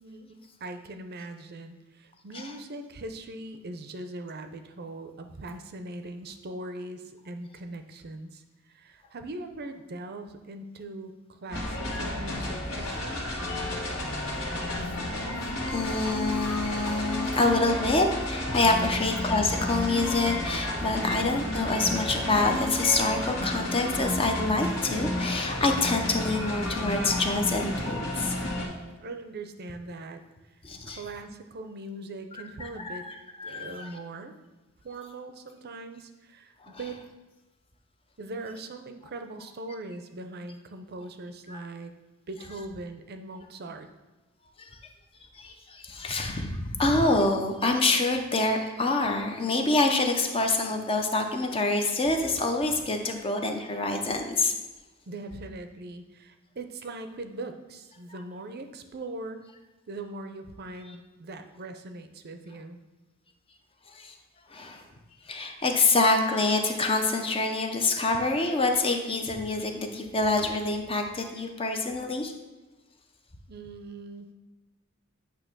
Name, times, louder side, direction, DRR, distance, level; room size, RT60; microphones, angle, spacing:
voice 1, 0.0-13.2 28.5-30.2 30.5-30.6 30.9-33.1 33.4-34.4 34.8-36.5 36.8-37.0 38.2-41.9 42.3-43.9 55.1-59.4 59.9-62.8 73.5-74.3, right 2 dB, 50° right, 7 dB, 0.6 m, -40 dB
sound 1, 11.5-28.7, left 1 dB, 75° left, 1.9 m, -31 dB
voice 2, 15.7-28.3 30.6-31.0 32.6-33.9 36.6-36.8 41.5-41.6 44.6-44.7 45.3-54.5 63.9-64.1 64.5-64.8 65.3-72.3, left 2 dB, 25° left, 4 dB, 0.6 m, -26 dB
8.7 x 2.9 x 6.0 m, 1.2 s
head